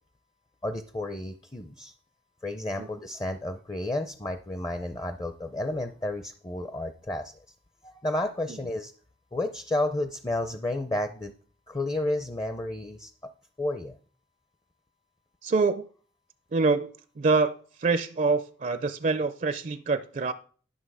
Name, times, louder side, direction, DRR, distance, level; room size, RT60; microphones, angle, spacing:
voice 1, 0.6-1.9 2.4-7.3 7.8-8.9 9.3-11.3 11.7-13.1 13.6-14.0, left 1 dB, 20° left, 9 dB, 0.5 m, -31 dB
voice 2, 15.4-15.8 16.5-16.9 17.2-17.5 17.8-20.3, right 4 dB, 45° right, 12 dB, 0.4 m, -25 dB
11.5 x 6.1 x 4.8 m, 0.43 s
head